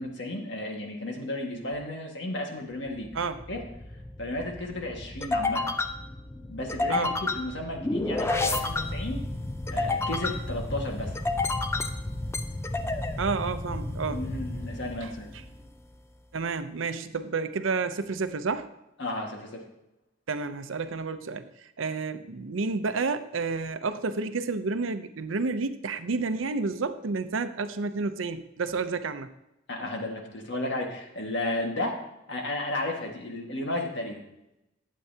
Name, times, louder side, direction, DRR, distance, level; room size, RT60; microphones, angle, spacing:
voice 1, 0.0-3.1 3.5-3.6 4.2-5.8 6.4-9.2 9.7-11.1 14.1-15.3 19.0-19.6 29.7-32.0 32.3-34.2, left 1 dB, 65° left, 1 dB, 1.7 m, -33 dB
sound 1, 2.9-15.6, left 2 dB, 15° left, 0.5 m, -31 dB
voice 2, 13.2-14.2 15.0-15.1 16.3-18.7 20.3-21.5 21.8-29.3, right 4 dB, 80° right, 10 dB, 0.6 m, -30 dB
12.0 x 8.4 x 2.8 m, 0.89 s
head